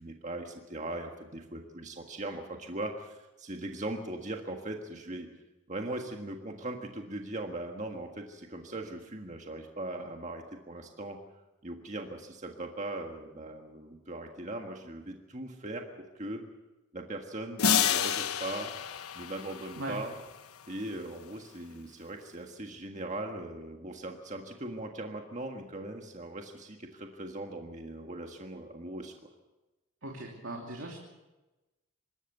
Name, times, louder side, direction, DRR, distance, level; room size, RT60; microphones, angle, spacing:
voice 1, 0.0-5.3 5.7-11.2 11.6-15.8 16.1-16.4 16.9-18.7 19.1-20.2 20.7-29.1, right 1 dB, 35° right, 3 dB, 1.6 m, -39 dB
sound 1, 17.6-20.1, left 8 dB, 85° left, 1.1 m, -29 dB
voice 2, 30.0-31.0, right 1 dB, 65° right, 0 dB, 2.8 m, -39 dB
25.5 x 13.5 x 8.0 m, 1.1 s
head